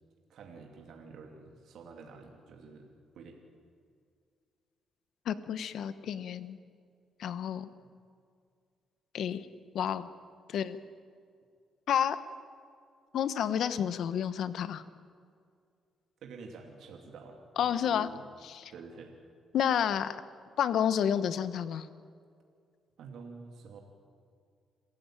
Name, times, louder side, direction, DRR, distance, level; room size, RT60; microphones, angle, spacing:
voice 1, 0.3-3.4 16.2-18.2 18.7-19.1 23.0-23.8, right 4 dB, 70° right, 2 dB, 2.8 m, -49 dB
voice 2, 5.3-6.6 7.2-7.7 9.1-9.4 9.7-10.1 10.5-10.8 11.9-12.2 13.1-14.8 17.6-18.1 18.4-18.7 19.5-20.2 20.6-21.9, left 9 dB, 70° left, 14 dB, 1.1 m, -30 dB
27.5 x 15.0 x 9.1 m, 2.2 s
cardioid pair, 90°, 0 cm